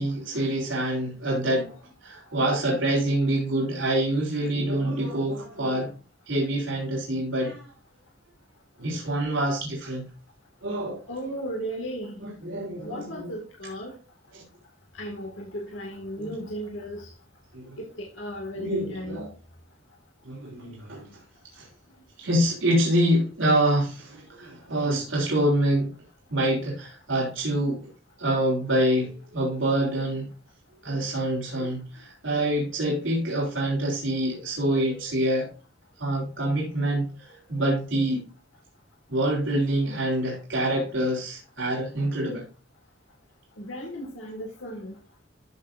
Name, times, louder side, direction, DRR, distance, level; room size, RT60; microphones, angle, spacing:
voice 1, 0.0-5.9 6.3-7.7 8.8-10.1 10.6-11.0 12.2-13.3 14.3-14.4 16.2-16.3 17.5-17.8 18.5-19.3 20.2-21.2 21.5-21.7 22.2-25.9 26.3-27.9 28.2-30.3 30.8-35.5 36.0-38.2 39.1-42.4, right 1 dB, 80° right, 3.5 m, -26 dB
voice 2, 11.1-12.2 12.8-14.0 14.9-17.1 17.8-19.3 43.6-45.0, equal, 90° left, 2.1 m, -35 dB
13.5 x 6.8 x 2.6 m
head